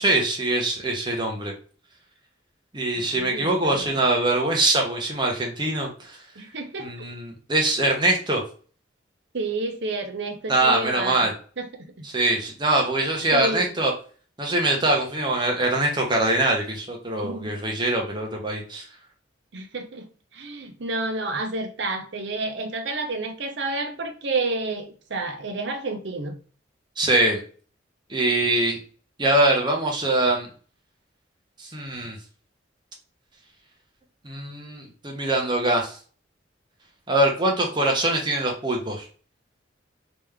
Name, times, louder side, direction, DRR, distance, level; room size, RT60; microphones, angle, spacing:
voice 1, 0.0-1.5 2.7-5.9 6.8-8.4 10.5-11.3 12.0-13.9 14.4-18.8 27.0-27.4 28.1-28.8 29.2-30.5 31.6-32.2 34.2-36.0 37.1-39.1, right 2 dB, 25° right, 0 dB, 1.0 m, -23 dB
voice 2, 3.0-4.0 6.4-6.9 9.3-11.3 11.6-11.7 12.0-12.1 13.3-13.7 17.2-17.6 19.5-20.1 20.3-26.4, right 2 dB, 70° right, 5 dB, 0.8 m, -30 dB
3.4 x 3.0 x 3.5 m, 0.41 s
head